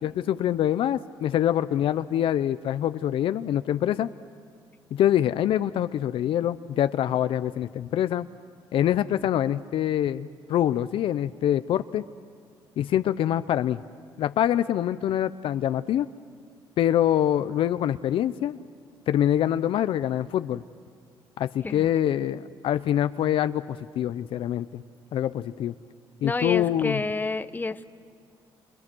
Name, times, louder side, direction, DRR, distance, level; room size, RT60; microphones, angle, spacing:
voice 1, 0.0-4.1 4.9-8.3 8.7-12.1 12.8-13.8 14.2-16.1 16.8-18.6 19.1-20.6 21.4-24.8 25.1-25.7 26.2-27.0, left 11 dB, 70° left, 12 dB, 0.6 m, -25 dB
voice 2, 26.2-27.9, left 3 dB, 20° left, 11 dB, 1.1 m, -29 dB
30.0 x 27.5 x 6.2 m, 2.1 s
cardioid pair, 85°, 9 cm